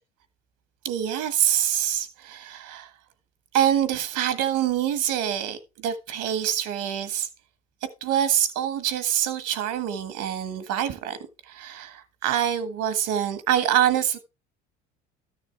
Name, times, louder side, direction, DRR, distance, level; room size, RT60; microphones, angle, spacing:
voice 1, 0.8-2.9 3.5-7.3 8.0-11.2 11.5-14.2, right 10 dB, 65° right, 1.6 m, -25 dB
13.0 x 6.7 x 3.4 m
hypercardioid pair, 70°, 32 cm